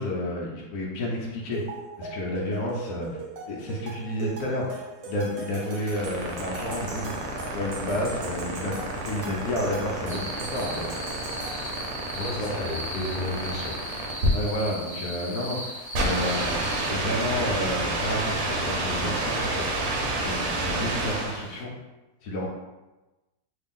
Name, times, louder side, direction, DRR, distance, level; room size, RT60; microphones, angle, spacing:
voice 1, 0.0-1.6 2.0-3.1 3.5-7.2 7.5-8.7 9.0-11.0 12.4-12.5 14.3-19.6 20.2-21.7 22.2-22.5, left 1 dB, 85° left, -3 dB, 0.7 m, -30 dB
sound 1, 1.5-12.1, right 3 dB, 70° right, 0.8 m, -40 dB
sound 2, 5.6-21.5, right 1 dB, 85° right, 1.5 m, -29 dB
sound 3, 10.1-16.9, equal, 40° left, 1.5 m, -37 dB
voice 2, 12.1-13.8, left 1 dB, 60° left, -3 dB, 1.1 m, -32 dB
3.3 x 2.4 x 3.6 m, 1.1 s
omnidirectional pair, 2.3 m